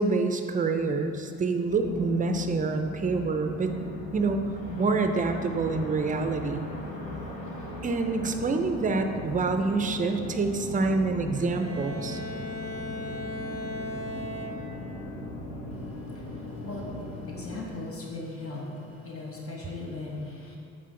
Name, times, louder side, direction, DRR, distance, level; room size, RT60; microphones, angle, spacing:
voice 1, 0.0-3.7 4.1-4.5 4.8-6.7 7.8-12.2, right 3 dB, 25° right, 6 dB, 0.5 m, -27 dB
sound 1, 1.7-17.6, left 1 dB, 65° left, 1.1 m, -39 dB
Bowed string instrument, 11.3-15.0, left 1 dB, 5° left, 1.1 m, -37 dB
voice 2, 15.7-20.6, left 2 dB, 50° left, -2 dB, 1.1 m, -39 dB
7.5 x 3.7 x 3.7 m, 2.5 s
cardioid pair, 90°, 30 cm